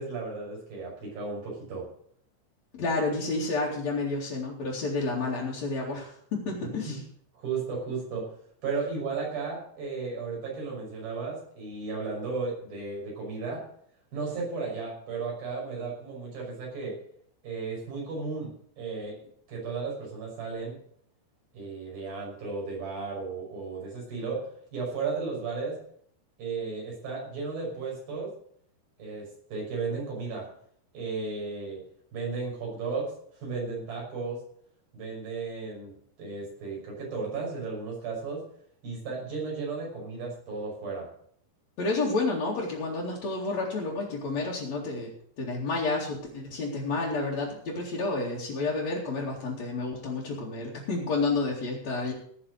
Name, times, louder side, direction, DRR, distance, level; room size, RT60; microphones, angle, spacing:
voice 1, 0.0-1.9 6.9-7.0 7.3-8.3 8.6-13.6 14.1-17.0 17.4-19.2 19.5-20.8 21.5-25.8 26.4-28.3 29.0-30.5 30.9-31.8 32.1-34.4 34.9-35.9 36.2-38.4 38.8-41.1, right 4 dB, 55° right, -2 dB, 7.6 m, -34 dB
voice 2, 2.7-7.0 41.8-45.1 45.4-52.1, left 3 dB, 45° left, -6 dB, 3.3 m, -30 dB
18.0 x 6.8 x 6.6 m, 0.63 s
omnidirectional pair, 5.1 m